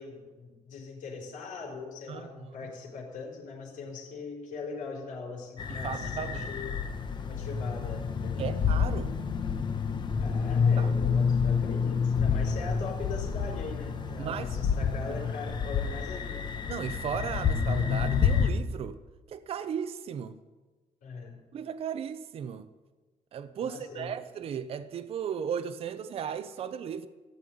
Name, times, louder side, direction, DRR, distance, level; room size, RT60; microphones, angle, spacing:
voice 1, 0.0-6.8 7.2-8.5 10.2-16.5 21.0-21.4 23.6-24.2, left 4 dB, 65° left, 4.6 m, -41 dB
voice 2, 2.1-2.5 5.7-6.5 8.4-9.1 10.8-10.9 14.2-14.5 16.7-19.0 19.3-20.4 21.5-22.7 23.3-27.1, right 8 dB, 45° right, 0.7 m, -36 dB
sound 1, 5.6-18.5, left 6 dB, 35° left, 1.1 m, -28 dB
16.0 x 7.0 x 9.4 m
cardioid pair, 175°, 14 cm